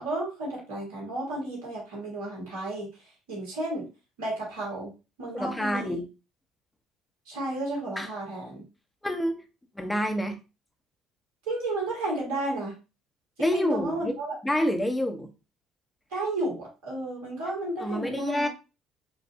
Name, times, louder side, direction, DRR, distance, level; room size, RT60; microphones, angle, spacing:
voice 1, 0.0-3.9 4.2-4.9 5.2-6.0 7.3-8.6 11.5-12.7 13.4-14.4 16.1-18.5, right 2 dB, 75° right, -3 dB, 1.7 m, -32 dB
voice 2, 5.3-6.0 8.0-8.1 9.0-9.3 9.7-10.4 13.4-14.1 14.4-15.3 17.8-18.5, equal, 10° left, 5 dB, 1.0 m, -27 dB
5.5 x 2.6 x 2.8 m, 0.30 s
hypercardioid pair, 55°, 0 cm